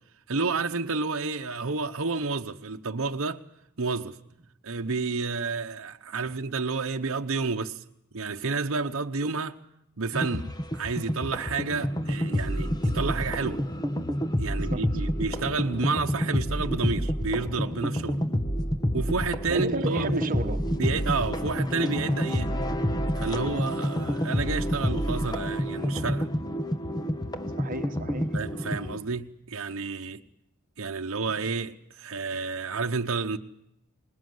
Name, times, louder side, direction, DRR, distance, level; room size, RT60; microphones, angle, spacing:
voice 1, 0.3-3.4 3.8-4.2 4.6-7.8 8.1-9.6 10.0-13.6 14.4-18.2 18.9-20.3 20.8-22.6 23.2-26.3 28.3-30.2 30.8-33.4, right 4 dB, 65° right, 1.0 m, -30 dB
sound 1, 10.1-29.0, equal, 20° left, 1.3 m, -28 dB
voice 2, 14.5-14.9 19.5-20.7 27.6-28.4, right 2 dB, 40° right, 1.4 m, -33 dB
26.0 x 20.5 x 7.9 m
head